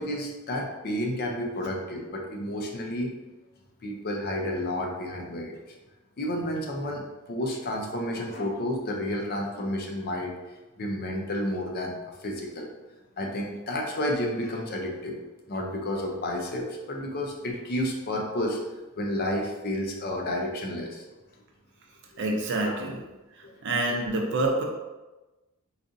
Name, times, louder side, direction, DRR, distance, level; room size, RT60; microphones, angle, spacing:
voice 1, 0.0-3.1 3.8-5.5 6.2-10.3 10.8-12.0 12.2-12.7 13.2-15.2 15.5-18.6 19.0-21.0 22.6-22.8 23.4-23.5 23.9-24.0, left 1 dB, 45° left, 1 dB, 0.5 m, -31 dB
voice 2, 22.2-23.0 23.3-24.6, right 2 dB, 55° right, 1 dB, 0.6 m, -27 dB
4.0 x 2.4 x 2.6 m, 1.1 s
head